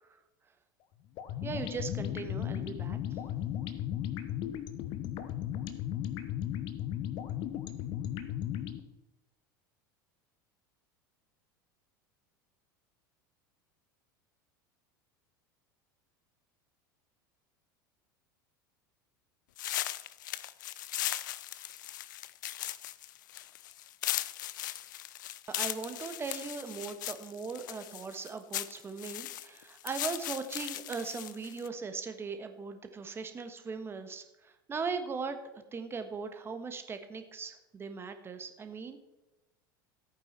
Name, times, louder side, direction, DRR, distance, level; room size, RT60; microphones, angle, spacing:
sound 1, 1.2-8.8, left 10 dB, 45° left, 1.0 m, -36 dB
voice 1, 1.4-3.0 25.5-39.0, right 5 dB, 20° right, 8 dB, 1.4 m, -39 dB
sound 2, 19.6-31.7, left 14 dB, 60° left, 0.5 m, -38 dB
14.0 x 9.0 x 4.4 m, 0.97 s
figure-of-eight pair, 75°, 11 cm